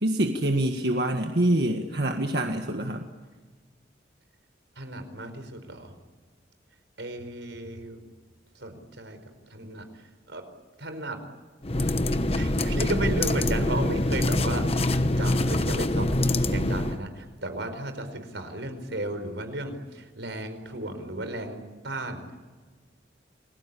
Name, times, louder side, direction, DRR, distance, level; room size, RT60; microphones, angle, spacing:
voice 1, 0.0-3.0, right 1 dB, 60° right, 3 dB, 1.8 m, -25 dB
voice 2, 4.8-5.9 7.0-8.0 8.5-9.2 9.5-10.4 10.8-11.2 12.3-21.6 21.8-22.4, right 1 dB, 85° right, 8 dB, 4.7 m, -34 dB
sound 1, 11.6-17.0, left 1 dB, 35° left, 1.1 m, -25 dB
29.5 x 21.0 x 8.6 m, 1.4 s
head